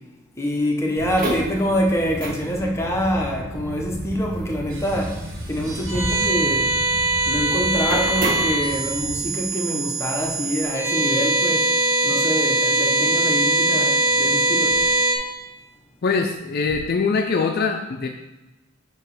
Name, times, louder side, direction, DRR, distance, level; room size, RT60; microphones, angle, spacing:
voice 1, 0.4-6.8 7.3-11.7 12.0-14.8, equal, 15° left, 0.9 m, -25 dB
sound 1, 1.0-9.2, right 1 dB, 45° right, 1.3 m, -32 dB
sound 2, 4.7-15.2, right 2 dB, 70° right, 1.3 m, -22 dB
voice 2, 16.0-18.1, left 4 dB, 50° left, 0.4 m, -22 dB
7.6 x 3.0 x 4.9 m
head